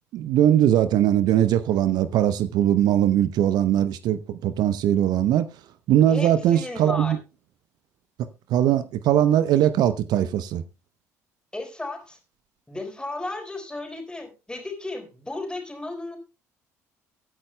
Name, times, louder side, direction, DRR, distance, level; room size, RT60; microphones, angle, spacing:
voice 1, 0.1-5.5 5.9-7.2 8.5-10.6, right 11 dB, 55° right, 0.7 m, -20 dB
voice 2, 6.1-7.2 11.5-12.2 12.7-16.2, left 2 dB, 10° left, 4.1 m, -34 dB
23.5 x 9.6 x 2.2 m
figure-of-eight pair, 55°, 8 cm